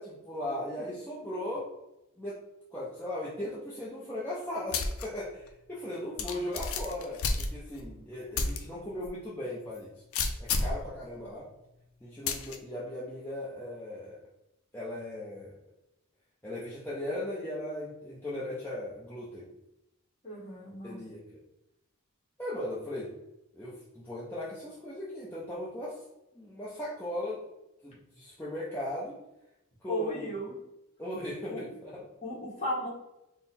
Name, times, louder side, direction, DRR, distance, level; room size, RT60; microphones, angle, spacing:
voice 1, 0.0-1.7 2.2-2.4 2.7-10.0 10.4-11.5 12.0-14.2 14.7-15.6 16.4-19.5 20.8-21.2 22.4-23.1 23.5-26.0 26.3-27.4 27.8-29.2 29.8-30.3 31.0-32.1, left 1 dB, 10° left, -8 dB, 0.6 m, -38 dB
sound 1, 4.7-5.0 5.5-5.6 6.2-7.9 8.3-8.6 9.0-9.1 10.1-10.8 12.3-12.6, left 4 dB, 70° left, 0.5 m, -30 dB
voice 2, 20.2-21.0 29.9-30.5 31.5-31.6 32.2-32.9, equal, 30° left, -6 dB, 1.3 m, -35 dB
3.8 x 2.1 x 4.1 m, 0.89 s
head